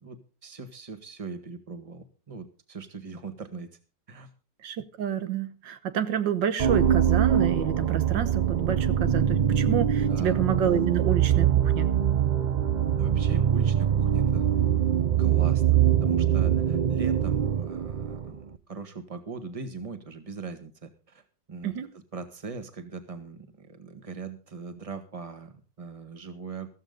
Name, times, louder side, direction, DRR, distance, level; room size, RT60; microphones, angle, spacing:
voice 1, 0.0-3.7 4.1-4.3 10.1-10.4 13.0-14.5 15.2-21.2 21.5-26.7, right 4 dB, 20° right, 8 dB, 1.6 m, -40 dB
voice 2, 4.6-11.9 21.6-21.9, right 9 dB, 85° right, 11 dB, 1.8 m, -29 dB
sound 1, 6.6-18.5, right 9 dB, 65° right, 0.4 m, -23 dB
14.5 x 14.5 x 3.8 m, 0.35 s
omnidirectional pair, 1.9 m